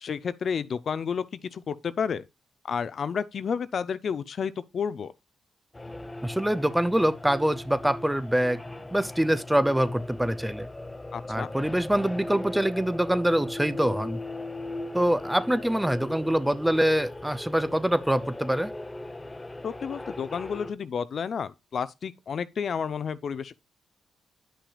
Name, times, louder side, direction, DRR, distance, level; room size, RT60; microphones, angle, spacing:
voice 1, 0.0-2.2 2.7-5.1 11.1-11.5 19.6-23.6, left 6 dB, 60° left, 0.5 m, -31 dB
sound 1, 5.7-20.7, left 2 dB, 20° left, 0.8 m, -38 dB
voice 2, 6.2-8.6 8.9-10.7 11.3-14.2 14.9-18.7, right 1 dB, 5° right, 0.4 m, -25 dB
9.8 x 6.0 x 2.3 m
cardioid pair, 65°, 0 cm